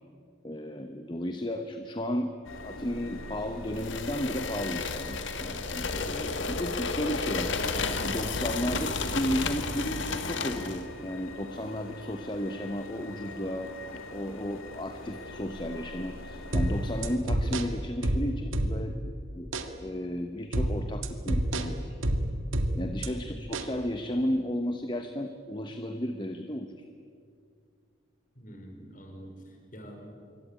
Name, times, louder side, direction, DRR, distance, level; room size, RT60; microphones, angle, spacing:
voice 1, 0.4-21.8 22.7-26.9, equal, 20° left, 7 dB, 1.1 m, -34 dB
sound 1, 2.4-17.2, left 2 dB, 85° left, 2.5 m, -42 dB
sound 2, 3.7-10.9, left 4 dB, 65° left, 1.9 m, -32 dB
sound 3, 16.5-19.1 19.5-19.7 20.5-23.1 23.5-23.7, right 1 dB, 80° right, 1.9 m, -29 dB
voice 2, 28.4-30.1, equal, 40° left, 3 dB, 5.4 m, -46 dB
26.5 x 24.0 x 9.1 m, 2.3 s
head